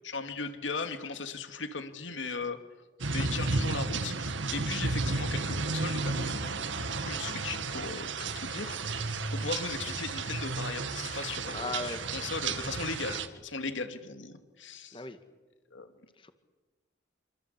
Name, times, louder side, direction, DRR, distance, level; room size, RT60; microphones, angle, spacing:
voice 1, 0.0-2.6 3.1-6.5 7.0-15.0 15.7-15.9, left 4 dB, 90° left, 8 dB, 2.6 m, -38 dB
sound 1, 3.0-13.3, right 3 dB, 85° right, 1.9 m, -33 dB
voice 2, 11.5-12.0 14.9-15.2 16.2-16.3, left 2 dB, 25° left, 9 dB, 1.9 m, -36 dB
27.5 x 25.5 x 8.4 m, 1.2 s
head